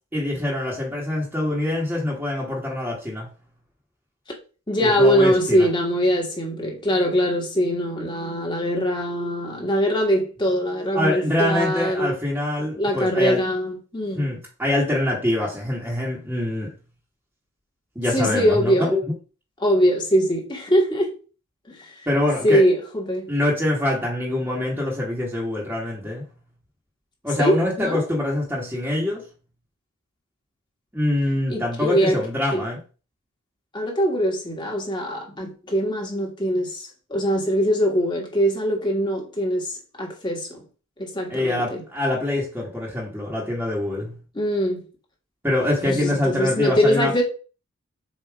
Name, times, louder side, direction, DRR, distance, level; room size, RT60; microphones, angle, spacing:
voice 1, 0.1-3.3 4.8-5.7 10.9-13.4 14.1-16.7 17.9-18.7 22.1-22.6 23.3-26.2 27.2-29.2 30.9-32.8 41.3-44.1 45.4-47.1, left 1 dB, 10° right, 1.4 m, -24 dB
voice 2, 4.7-12.1 12.6-14.3 18.1-18.9 19.6-21.1 21.7-22.1 22.4-23.3 27.4-28.0 31.5-32.2 32.5-32.6 33.7-40.6 41.0-41.8 44.3-44.8 45.8-47.2, equal, 20° left, 1.7 m, -22 dB
7.2 x 2.9 x 4.7 m
head